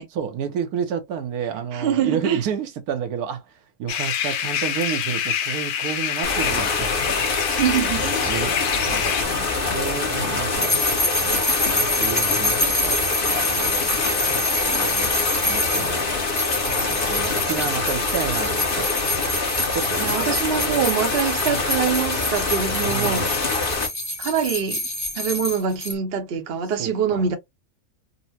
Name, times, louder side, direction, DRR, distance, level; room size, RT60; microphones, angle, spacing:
voice 1, 0.0-3.4 3.8-6.9 8.3-8.5 8.9-9.5 9.7-10.7 11.2-11.4 11.7-14.0 14.3-15.1 15.4-16.2 16.9-18.9 19.7-20.1 20.5-20.9 22.8-23.2 26.8-27.3, right 7 dB, 75° right, 1.1 m, -30 dB
voice 2, 1.5-2.4 7.6-8.3 20.0-23.3 24.2-24.8 25.2-27.4, right 7 dB, 50° right, 0.8 m, -24 dB
sound 1, 3.9-9.2, left 9 dB, 80° left, 1.2 m, -26 dB
sound 2, 6.2-23.9, left 3 dB, 40° left, 1.1 m, -25 dB
sound 3, 10.5-25.9, left 2 dB, 15° left, 0.7 m, -26 dB
4.0 x 2.1 x 2.6 m
omnidirectional pair, 1.6 m